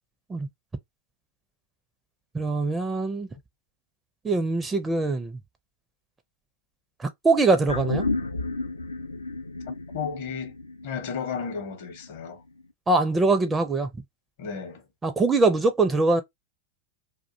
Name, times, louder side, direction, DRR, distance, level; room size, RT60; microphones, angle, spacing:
voice 1, 2.3-3.3 4.2-5.4 7.0-8.0 12.9-13.9 15.0-16.2, right 3 dB, 15° right, 0.4 m, -23 dB
sound 1, 7.7-12.3 12.6-12.7, left 3 dB, 80° left, 0.3 m, -32 dB
voice 2, 9.9-10.5 10.8-12.4 14.4-14.8, left 6 dB, 55° left, 0.7 m, -33 dB
2.3 x 2.2 x 2.6 m
figure-of-eight pair, 90°, 0 cm